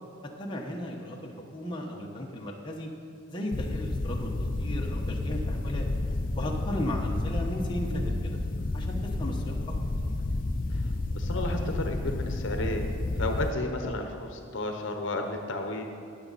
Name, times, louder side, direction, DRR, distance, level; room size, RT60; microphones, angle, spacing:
voice 1, 0.4-2.9 3.3-5.9 6.3-8.4 8.7-9.7, equal, 20° left, -1 dB, 1.1 m, -35 dB
sound 1, 3.5-13.5, left 2 dB, 40° left, 0.5 m, -31 dB
voice 2, 11.1-12.9 13.2-15.8, left 2 dB, 60° left, 4 dB, 0.9 m, -32 dB
19.5 x 7.3 x 4.1 m, 2.6 s
head